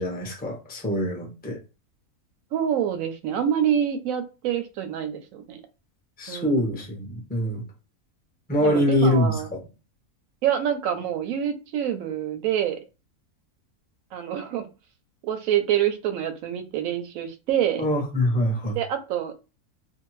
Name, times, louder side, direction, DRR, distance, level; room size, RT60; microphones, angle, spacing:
voice 1, 0.0-1.6 6.2-7.6 8.5-9.6 17.8-18.8, left 1 dB, 10° left, 0 dB, 0.4 m, -24 dB
voice 2, 2.5-5.6 6.3-6.7 8.6-9.5 10.4-12.8 14.1-14.7 15.2-17.8 18.6-19.4, right 9 dB, 70° right, 9 dB, 0.9 m, -26 dB
2.6 x 2.2 x 3.0 m, 0.31 s
omnidirectional pair, 1.6 m